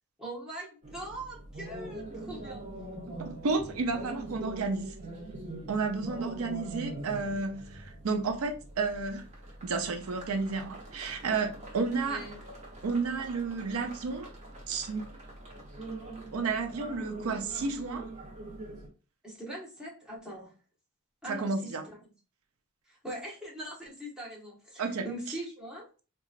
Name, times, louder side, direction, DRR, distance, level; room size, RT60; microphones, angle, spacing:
voice 1, 0.2-2.7 12.1-12.4 19.2-20.5 21.2-22.0 22.9-25.9, right 1 dB, 5° right, 1.0 m, -41 dB
sound 1, 0.8-18.9, right 2 dB, 35° right, 0.8 m, -44 dB
voice 2, 3.2-5.1 5.7-9.2 9.6-12.2 12.8-14.3 14.7-15.0 16.3-18.1 21.3-21.8 24.8-25.1, right 4 dB, 80° right, 0.5 m, -31 dB
3.9 x 2.4 x 2.4 m
head